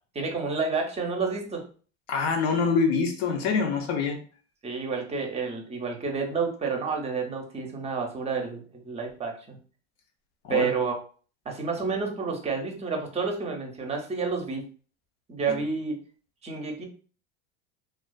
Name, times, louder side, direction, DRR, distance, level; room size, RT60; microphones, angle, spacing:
voice 1, 0.1-1.6 4.6-9.6 10.5-11.0 11.5-14.6 15.3-16.0 16.4-16.9, right 4 dB, 20° right, 0.6 m, -30 dB
voice 2, 2.1-4.2 10.4-10.6 15.5-15.6, left 5 dB, 80° left, 0.7 m, -25 dB
2.3 x 2.3 x 2.2 m
supercardioid pair, 115°, 33 cm